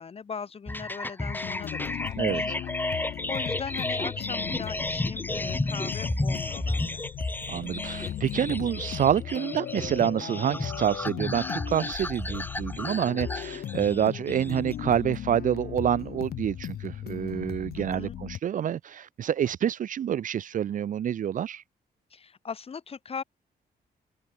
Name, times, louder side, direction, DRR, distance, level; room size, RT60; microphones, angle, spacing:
voice 1, 0.0-7.0 13.8-14.0 17.8-18.2 22.1-23.2, left 6 dB, 35° left, 1.6 m, -40 dB
sound 1, 0.7-14.7, left 2 dB, 10° left, 3.0 m, -33 dB
sound 2, 1.3-18.4, left 11 dB, 75° left, 0.7 m, -37 dB
voice 2, 7.5-21.6, right 9 dB, 55° right, 0.5 m, -27 dB
open air
wide cardioid pair, 155°, 17 cm